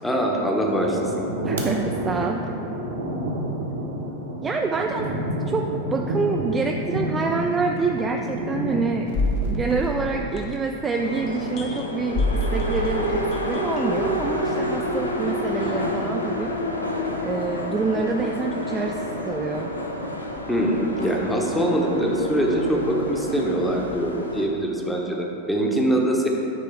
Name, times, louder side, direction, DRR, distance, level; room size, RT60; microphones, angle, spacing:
voice 1, 0.0-1.2 20.5-26.3, right 1 dB, 5° left, -1 dB, 0.9 m, -23 dB
sound 1, 0.6-10.4, right 1 dB, 60° right, 0.9 m, -29 dB
voice 2, 1.4-2.5 4.4-9.1 9.5-13.2 13.5-16.5 17.2-19.7, right 4 dB, 15° right, 2 dB, 0.3 m, -27 dB
sound 2, 7.2-7.3 8.0-8.1 9.1-10.8 11.3-14.4 15.2-15.3, left 1 dB, 35° left, 0.6 m, -27 dB
sound 3, 10.9-24.5, left 1 dB, 80° left, 0.6 m, -29 dB
9.6 x 3.4 x 4.6 m, 2.8 s
figure-of-eight pair, 90°, 0 cm